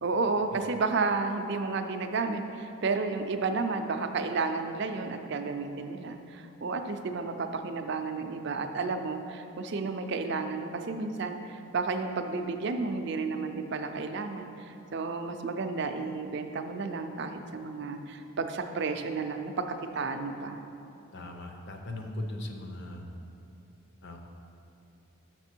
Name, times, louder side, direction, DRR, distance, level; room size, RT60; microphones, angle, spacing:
voice 1, 0.0-19.6 19.9-20.6, right 4 dB, 55° right, 7 dB, 0.4 m, -32 dB
voice 2, 21.1-23.1 24.0-24.2, left 1 dB, 50° left, 3 dB, 0.6 m, -38 dB
6.5 x 6.0 x 4.4 m, 2.8 s
head